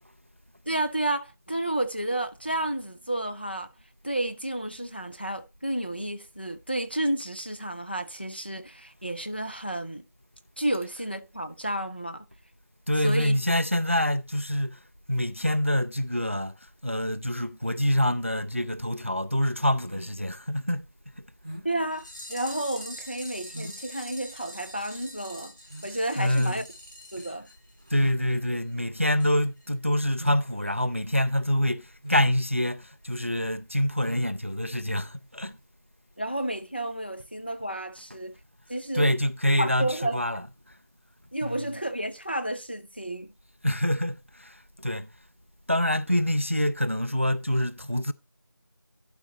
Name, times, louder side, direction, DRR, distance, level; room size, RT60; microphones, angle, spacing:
voice 1, 0.7-3.7 4.0-10.0 10.6-12.2 13.0-13.3 21.6-25.5 25.8-26.6 27.1-27.5 36.2-38.3 38.7-39.2 39.6-40.4 41.3-43.3, right 1 dB, 25° left, 0.5 m, -31 dB
voice 2, 12.9-14.8 15.1-16.5 16.8-20.9 26.2-26.6 27.9-35.6 38.9-40.4 41.4-41.7 43.6-45.1 45.7-48.1, equal, 35° right, 0.4 m, -26 dB
sound 1, 19.9-35.6, equal, 15° right, 0.9 m, -47 dB
sound 2, 21.9-28.1 28.4-28.5 28.7-28.8 29.2-29.3 29.6-29.7, equal, 55° left, 4.0 m, -44 dB
11.5 x 5.1 x 4.0 m
figure-of-eight pair, 175°, 12 cm